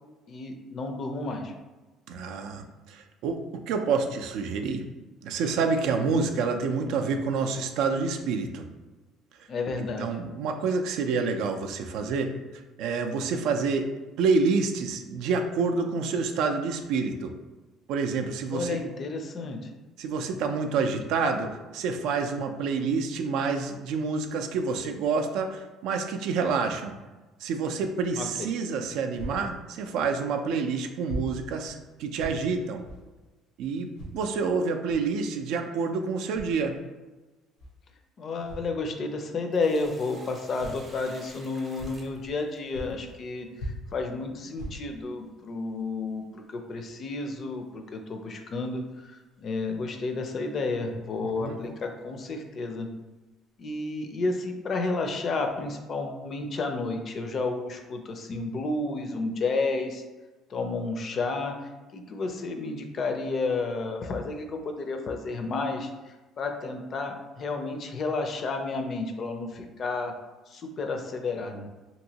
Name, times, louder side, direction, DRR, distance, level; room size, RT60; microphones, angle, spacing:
voice 1, 0.3-1.5 9.5-10.2 18.5-19.7 28.2-28.3 38.2-52.9 53.6-60.0 60.5-70.1 70.5-71.7, left 3 dB, 40° left, 4 dB, 0.4 m, -31 dB
voice 2, 2.1-4.8 5.2-8.6 10.0-12.3 12.8-13.9 14.2-17.3 17.9-18.8 20.0-26.9 27.4-32.8 33.6-36.7 51.4-51.6, right 4 dB, 75° right, 5 dB, 0.3 m, -28 dB
sound 1, 29.1-29.4 30.2-30.3 31.0-31.3 31.6-31.8 32.1-32.4 32.8-33.0 33.9-34.2 34.9-35.1 36.2-36.6 37.6-37.7 38.4-38.7 39.8-39.9 40.6-40.8 41.2-41.4 41.7-42.4 42.7-43.2 43.5-44.1 44.5-45.1 45.6-45.7 46.2-46.3, equal, 85° left, 0.8 m, -39 dB
Sink (filling or washing), 39.5-42.9 45.3-45.4 47.3-47.5 48.0-48.1 48.9-49.0 49.7-49.8 50.5-52.4, right 2 dB, 25° right, 0.6 m, -52 dB
2.9 x 2.7 x 2.8 m, 1.2 s
cardioid pair, 115°, 0 cm